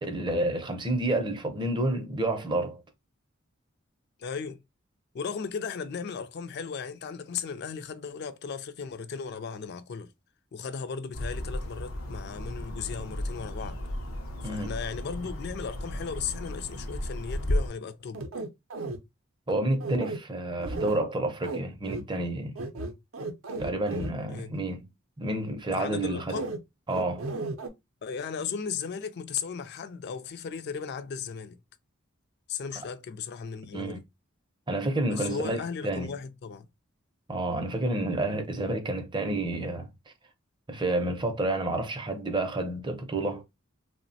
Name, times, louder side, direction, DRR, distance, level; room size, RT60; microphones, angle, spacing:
voice 1, 0.0-2.8 14.4-14.7 19.5-22.5 23.6-24.9 25.2-26.3 26.9-27.3 33.7-34.0 34.7-36.1 37.3-39.9 40.7-43.4, right 2 dB, 20° right, 0.5 m, -29 dB
voice 2, 4.2-4.6 5.1-10.1 10.5-13.8 14.4-18.2 24.3-24.6 25.7-26.5 28.0-31.6 32.5-34.0 35.1-36.7, left 6 dB, 50° left, 0.3 m, -36 dB
sound 1, 11.1-17.7, left 1 dB, 80° left, 0.7 m, -34 dB
sound 2, 18.1-19.0 19.8-20.2 20.6-21.0 21.4-21.6 21.8-22.0 22.6-24.1 26.3-26.6 26.9-27.7, right 2 dB, 75° right, 0.5 m, -34 dB
3.0 x 2.1 x 2.6 m
head